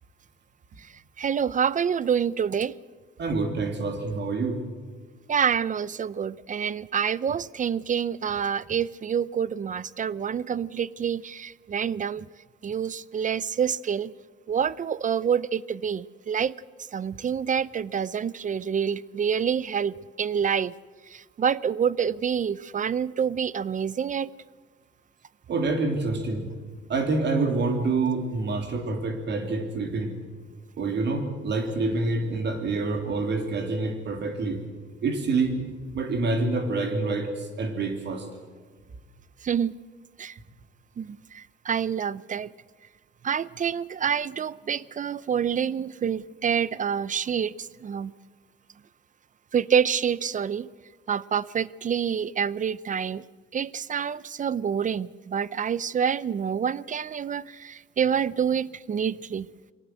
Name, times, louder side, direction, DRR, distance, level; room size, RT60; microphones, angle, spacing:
voice 1, 1.2-2.7 5.3-12.3 12.6-14.1 14.5-16.5 16.9-20.7 21.1-24.3 39.4-39.8 40.2-40.4 41.0-42.5 43.2-48.1 49.5-50.7 51.1-53.2 53.5-59.5, right 7 dB, 40° right, 21 dB, 0.6 m, -27 dB
voice 2, 3.2-4.6 25.5-26.5 26.9-30.1 30.8-34.6 35.0-35.6 35.9-38.3, right 3 dB, 60° right, 5 dB, 3.3 m, -27 dB
22.5 x 18.5 x 7.9 m, 1.5 s
cardioid pair, 90°, 20 cm